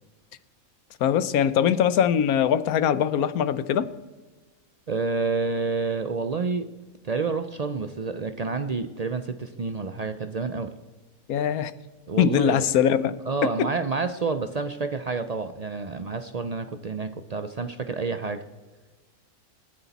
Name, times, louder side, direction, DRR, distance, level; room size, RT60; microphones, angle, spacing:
voice 1, 1.0-3.9 11.3-11.7 12.2-13.1 13.6-13.7, left 9 dB, 85° left, 14 dB, 1.2 m, -22 dB
voice 2, 4.9-6.6 7.0-10.7 12.1-12.6 13.3-18.4, right 4 dB, 75° right, 9 dB, 0.3 m, -29 dB
26.0 x 10.0 x 4.1 m, 1.3 s
omnidirectional pair, 1.5 m